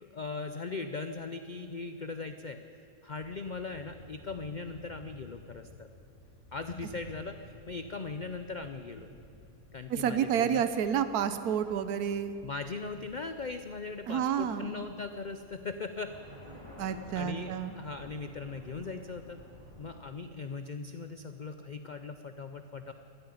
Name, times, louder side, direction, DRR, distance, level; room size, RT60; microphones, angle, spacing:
voice 1, 0.0-2.6 3.0-5.9 6.5-9.1 9.7-10.7 12.4-16.1 16.8-19.4 19.8-22.9, left 4 dB, 90° left, 8 dB, 0.4 m, -39 dB
sound 1, 3.2-20.0, left 1 dB, 20° left, 2.5 m, -53 dB
voice 2, 9.9-12.3 14.1-14.9 16.8-17.7, right 8 dB, 75° right, 11 dB, 1.3 m, -30 dB
13.5 x 10.5 x 9.8 m, 2.8 s
omnidirectional pair, 1.7 m